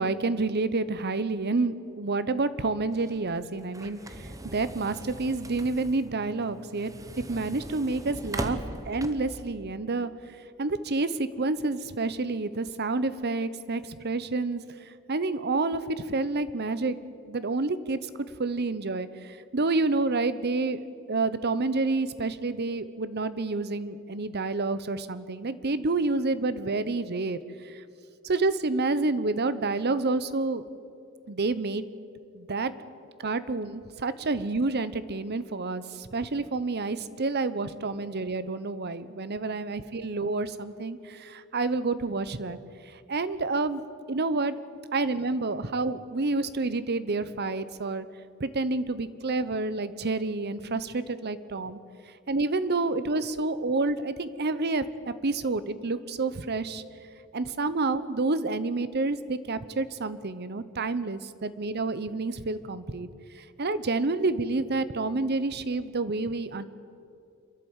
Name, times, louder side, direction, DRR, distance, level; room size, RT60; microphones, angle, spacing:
voice 1, 0.0-6.9 7.3-8.6 8.8-17.0 17.3-20.8 21.1-27.8 28.2-30.6 31.3-31.9 32.3-32.7 33.2-42.6 42.8-43.8 44.1-44.6 44.9-48.1 48.4-51.8 52.0-56.8 57.3-66.6, right 3 dB, 50° right, 14 dB, 0.9 m, -29 dB
sound 1, 2.9-9.5, right 1 dB, 15° right, 1.0 m, -40 dB
28.0 x 11.5 x 8.9 m, 2.5 s
head